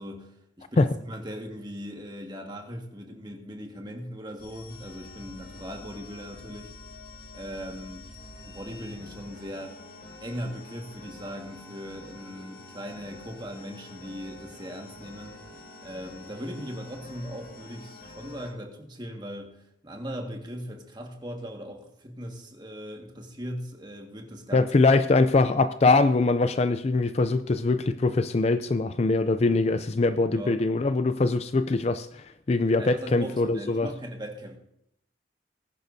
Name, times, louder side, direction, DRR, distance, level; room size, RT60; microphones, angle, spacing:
voice 1, 0.0-6.7 7.3-8.2 8.5-9.8 10.2-15.4 15.8-24.7 30.3-30.6 32.8-34.6, equal, 25° right, 2 dB, 1.8 m, -39 dB
sound 1, 4.4-18.5, left 2 dB, 55° left, 3.5 m, -47 dB
voice 2, 24.5-33.9, left 3 dB, 35° left, 11 dB, 0.4 m, -23 dB
20.5 x 10.5 x 2.7 m, 0.76 s
head